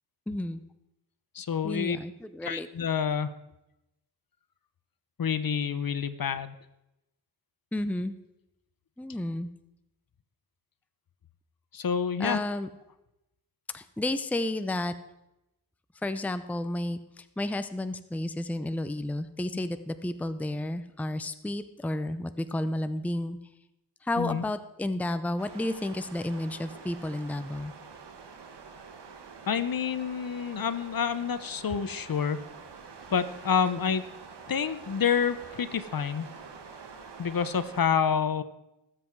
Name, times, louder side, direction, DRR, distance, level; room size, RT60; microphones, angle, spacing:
voice 1, 0.3-0.6 1.6-2.7 7.7-8.1 9.0-9.5 12.2-12.7 13.7-14.9 16.0-23.4 24.0-27.7, left 1 dB, 5° left, 11 dB, 0.6 m, -32 dB
voice 2, 1.3-2.0 2.4-3.3 5.2-6.5 11.7-12.4 24.2-24.4 29.5-32.4 33.1-34.0 34.5-36.3 37.2-38.4, left 7 dB, 55° left, 13 dB, 0.9 m, -28 dB
sound 1, 25.4-37.8, right 5 dB, 70° right, 1.6 m, -47 dB
19.0 x 7.7 x 4.7 m, 0.90 s
wide cardioid pair, 85°, 42 cm